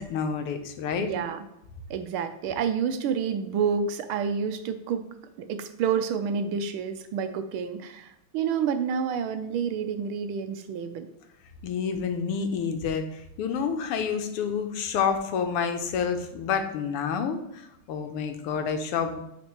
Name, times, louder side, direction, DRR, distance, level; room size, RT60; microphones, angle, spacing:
voice 1, 0.0-1.1 11.6-19.2, left 6 dB, 85° left, 6 dB, 1.8 m, -29 dB
voice 2, 1.0-1.4 1.9-5.0 5.4-11.1, right 6 dB, 75° right, 8 dB, 1.4 m, -29 dB
9.5 x 4.3 x 3.0 m, 0.83 s
omnidirectional pair, 2.4 m